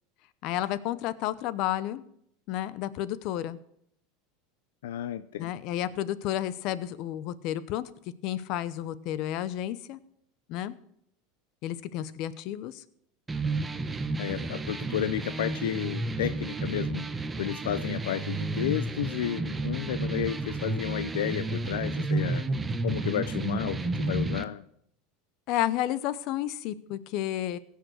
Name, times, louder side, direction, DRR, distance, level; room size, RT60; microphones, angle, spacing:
voice 1, 0.4-2.0 2.5-3.6 5.4-7.8 8.2-10.0 10.5-10.7 11.6-12.8 25.5-27.6, left 12 dB, 55° left, 16 dB, 0.8 m, -31 dB
voice 2, 4.8-5.5 14.2-17.1 17.4-22.5 22.8-24.6, left 11 dB, 85° left, 13 dB, 0.5 m, -32 dB
sound 1, 13.3-24.4, right 2 dB, 15° right, 0.8 m, -31 dB
16.5 x 6.6 x 6.6 m, 0.72 s
supercardioid pair, 120°, 0 cm